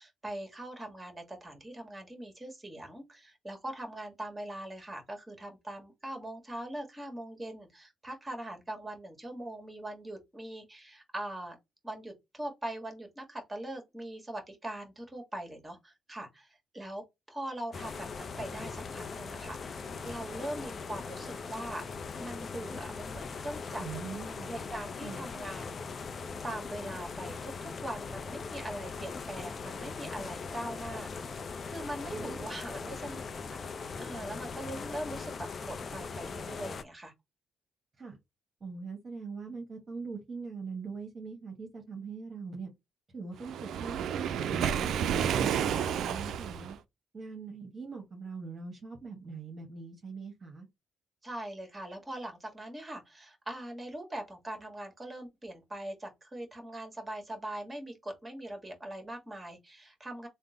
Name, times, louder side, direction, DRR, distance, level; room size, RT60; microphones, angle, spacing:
voice 1, 0.0-11.6 11.8-19.8 20.0-21.8 22.1-23.9 24.5-25.8 26.4-27.5 27.8-31.3 31.7-33.2 33.6-37.1 51.2-60.3, right 1 dB, 15° right, 1.5 m, -41 dB
sound 1, 17.7-36.8, left 5 dB, 45° left, 0.5 m, -40 dB
voice 2, 23.8-24.5 25.0-25.3 32.1-32.4 38.0-38.2 38.6-42.7 43.1-46.8 47.1-50.7, right 4 dB, 35° right, 1.0 m, -42 dB
Waves surf, 43.4-46.7, right 8 dB, 75° right, 0.3 m, -30 dB
3.5 x 2.1 x 3.8 m
cardioid pair, 90°, 0 cm